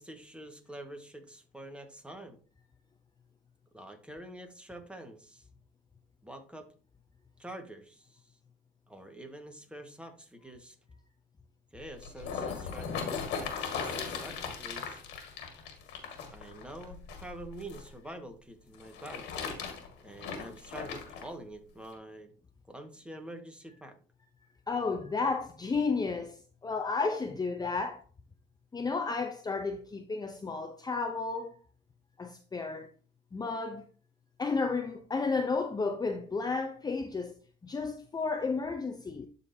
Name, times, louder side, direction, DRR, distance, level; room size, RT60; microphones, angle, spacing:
voice 1, 0.0-2.4 3.7-5.4 6.2-6.7 7.4-8.2 8.9-10.7 11.7-15.0 16.3-19.3 20.0-22.3 22.7-24.0, right 1 dB, 5° right, 1.5 m, -46 dB
sound 1, 11.8-17.9 18.7-21.3 21.9-22.0, left 6 dB, 90° left, 1.8 m, -38 dB
voice 2, 24.7-28.0 28.7-31.6 32.2-32.9 33.3-33.8 34.4-39.3, left 4 dB, 20° left, 0.7 m, -32 dB
12.5 x 4.1 x 2.8 m
cardioid pair, 90°, 17 cm